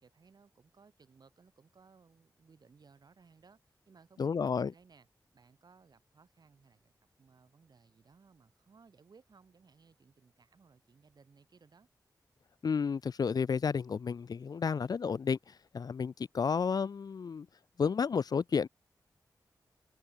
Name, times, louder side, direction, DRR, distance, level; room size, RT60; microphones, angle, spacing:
voice 1, 0.0-5.1 5.3-6.9 7.2-11.9, right 5 dB, 75° right, 5.7 m, -62 dB
voice 2, 4.2-4.7 12.6-15.4 15.7-17.5 17.8-18.7, left 6 dB, 65° left, 0.5 m, -31 dB
wide cardioid pair, 65°, 7 cm